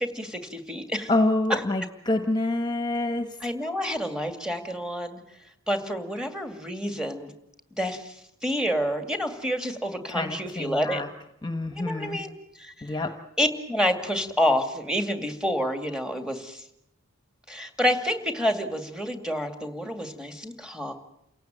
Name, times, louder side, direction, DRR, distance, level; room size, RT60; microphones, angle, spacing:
voice 1, 0.0-1.1 1.5-1.6 3.4-5.2 5.7-7.3 7.8-8.1 8.4-11.0 11.7-12.3 12.6-12.7 13.4-16.6 17.5-20.9, equal, 5° right, 6 dB, 2.3 m, -28 dB
voice 2, 1.1-3.3 10.1-11.1 11.4-12.2 12.8-13.1, left 2 dB, 20° left, 7 dB, 1.3 m, -27 dB
29.5 x 17.0 x 9.1 m, 0.80 s
head